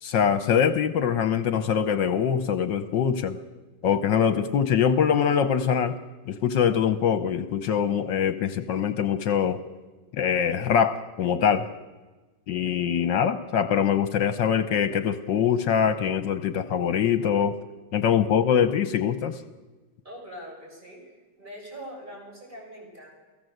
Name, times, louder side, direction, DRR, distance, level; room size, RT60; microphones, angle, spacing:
voice 1, 0.0-3.4 3.8-6.0 6.3-9.6 10.1-11.7 12.5-17.6 17.9-19.4, left 8 dB, 70° left, 11 dB, 1.6 m, -23 dB
voice 2, 20.0-21.1 21.4-23.1, equal, 25° right, -1 dB, 7.3 m, -42 dB
29.0 x 17.5 x 7.9 m, 1.2 s
omnidirectional pair, 2.1 m